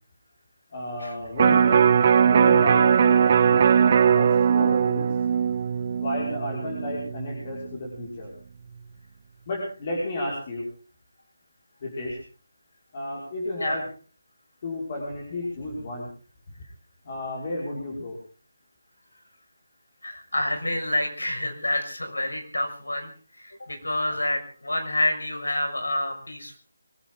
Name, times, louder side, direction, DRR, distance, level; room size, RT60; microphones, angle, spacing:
voice 1, 0.7-1.9 2.2-5.1 6.0-8.3 9.5-10.6 11.8-12.2 12.9-13.8 14.6-16.1 17.0-18.2 24.1-24.2, left 1 dB, 35° left, -4 dB, 5.8 m, -32 dB
Electric guitar, 1.4-7.6 8.0-8.1, right 7 dB, 35° right, 0.8 m, -20 dB
voice 2, 20.0-26.6, left 1 dB, 80° left, 4 dB, 6.3 m, -28 dB
24.0 x 14.5 x 4.0 m, 0.39 s
figure-of-eight pair, 160°, 0 cm